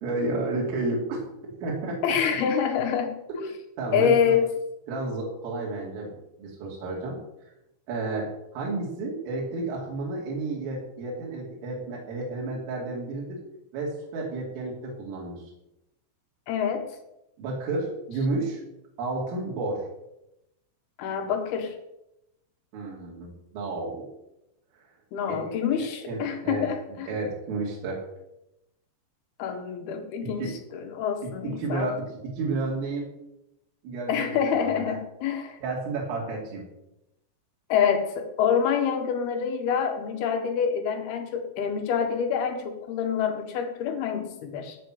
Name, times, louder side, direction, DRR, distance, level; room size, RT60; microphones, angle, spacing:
voice 1, 0.0-2.0 3.8-4.4 4.9-7.2 7.9-8.3 8.5-13.4 13.7-15.4 17.4-18.6 19.0-19.9 22.7-24.1 25.3-25.5 26.1-26.7 27.1-28.1 30.2-30.6 31.4-32.1 32.4-33.1 33.8-35.0 35.6-36.7, right 3 dB, 80° right, -3 dB, 5.6 m, -31 dB
voice 2, 2.0-3.5 3.9-4.5 16.5-16.8 21.0-21.7 25.1-27.1 29.4-31.9 34.1-35.6 37.7-44.8, left 7 dB, 60° left, 5 dB, 3.1 m, -26 dB
18.0 x 6.2 x 8.0 m, 0.87 s
omnidirectional pair, 5.8 m